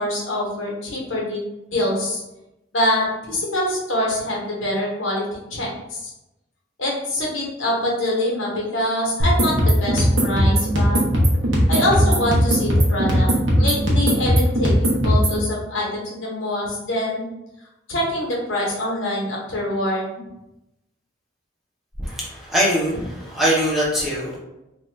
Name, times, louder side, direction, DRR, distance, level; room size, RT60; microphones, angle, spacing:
voice 1, 0.0-1.4 1.7-2.2 2.7-5.2 5.5-6.1 6.8-11.0 11.7-13.3 13.6-17.3 17.9-20.2, left 1 dB, 90° left, -3 dB, 1.0 m, -24 dB
sound 1, 9.2-15.4, equal, 80° right, 0.8 m, -18 dB
voice 2, 22.0-24.4, equal, ahead, -7 dB, 0.7 m, -22 dB
2.7 x 2.4 x 3.2 m, 0.92 s
head